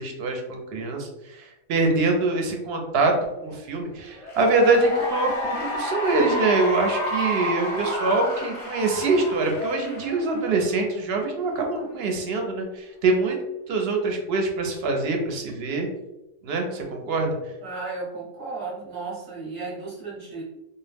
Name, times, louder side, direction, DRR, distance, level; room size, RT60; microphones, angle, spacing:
voice 1, 0.0-3.1 3.4-13.4 13.7-15.9 16.4-17.4, right 3 dB, 65° right, 2 dB, 0.7 m, -24 dB
Cheering / Applause, 4.1-10.8, left 1 dB, 40° left, 0.5 m, -30 dB
voice 2, 17.6-20.4, right 3 dB, 20° right, -6 dB, 0.7 m, -34 dB
2.3 x 2.0 x 3.3 m, 0.96 s
omnidirectional pair, 1.3 m